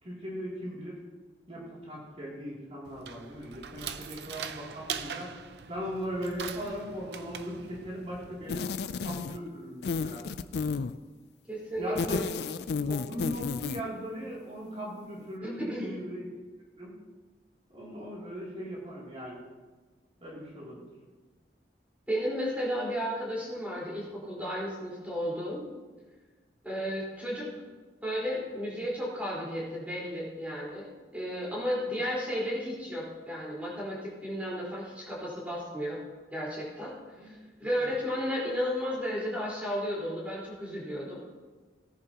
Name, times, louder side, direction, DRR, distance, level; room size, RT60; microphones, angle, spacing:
voice 1, 0.0-1.0 1.5-5.3 5.7-8.7 9.0-10.2 11.8-12.3 12.9-16.2 16.8-16.9 17.7-19.4 20.2-20.9 37.2-37.3 37.8-37.9, equal, 35° right, -6 dB, 2.9 m, -38 dB
sound 1, 2.8-8.5, right 7 dB, 70° right, 0.6 m, -42 dB
sound 2, 8.5-9.5 9.8-11.0 11.8-13.9, left 5 dB, 65° left, 0.4 m, -32 dB
voice 2, 11.5-12.2 15.4-15.9 22.1-25.6 26.6-27.5 28.0-36.0 36.3-36.9 37.2-41.2, equal, 10° right, -6 dB, 4.3 m, -33 dB
18.0 x 10.5 x 2.9 m, 1.3 s
head